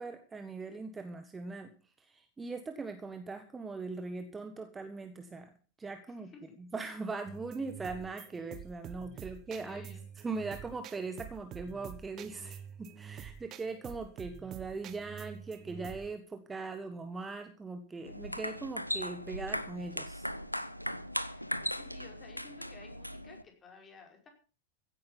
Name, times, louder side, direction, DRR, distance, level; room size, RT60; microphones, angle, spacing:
voice 1, 0.0-1.7 2.0-5.5 5.8-6.3 6.6-20.3, right 3 dB, 15° right, 7 dB, 1.6 m, -40 dB
voice 2, 6.1-6.5 9.1-9.3 9.6-10.0 21.3-24.3, left 4 dB, 20° left, 3 dB, 5.2 m, -55 dB
sound 1, 7.3-16.1, right 9 dB, 35° right, 1.3 m, -48 dB
sound 2, 18.1-23.4, equal, 90° left, 0.8 m, -38 dB
16.0 x 10.0 x 5.9 m, 0.36 s
figure-of-eight pair, 90°, 0 cm